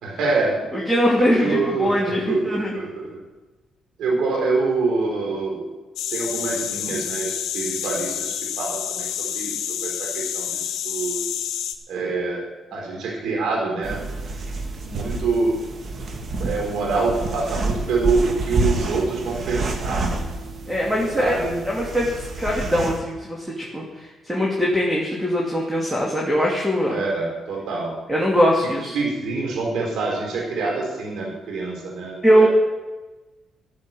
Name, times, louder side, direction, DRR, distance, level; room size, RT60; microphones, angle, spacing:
voice 1, 0.0-0.6 1.3-2.4 2.7-3.1 4.0-5.7 6.1-10.5 10.8-11.3 11.9-12.4 12.7-14.0 14.8-15.6 16.4-20.1 21.2-21.6 26.9-28.0 28.9-32.5, right 3 dB, 75° right, -1 dB, 4.5 m, -25 dB
voice 2, 0.7-2.7 20.7-21.4 21.7-23.8 24.3-27.0 28.1-29.0 32.2-32.5, equal, 5° right, -3 dB, 2.6 m, -21 dB
sound 1, 6.0-11.7, left 9 dB, 85° left, 1.1 m, -28 dB
sound 2, 13.8-23.0, right 3 dB, 50° right, 2.0 m, -28 dB
14.0 x 7.5 x 7.5 m, 1.1 s
cardioid pair, 90°, 0 cm